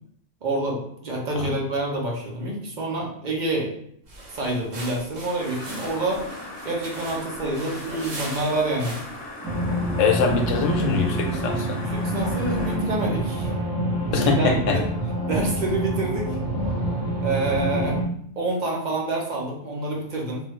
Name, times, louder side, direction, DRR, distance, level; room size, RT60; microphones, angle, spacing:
voice 1, 0.4-3.7 4.3-6.2 6.6-8.9 11.7-13.5 14.1-14.8 15.3-16.4 17.2-18.0 18.4-20.4, right 2 dB, 45° right, -2 dB, 0.7 m, -27 dB
sound 1, 4.0-9.3, right 2 dB, 75° right, 1.3 m, -40 dB
sound 2, 5.4-12.8, left 1 dB, 55° left, 0.9 m, -39 dB
sound 3, 9.4-18.0, right 1 dB, 5° left, 0.8 m, -27 dB
voice 2, 10.0-11.8 14.1-14.8, left 4 dB, 85° left, 3 dB, 1.0 m, -23 dB
3.1 x 2.3 x 3.0 m, 0.67 s
omnidirectional pair, 1.3 m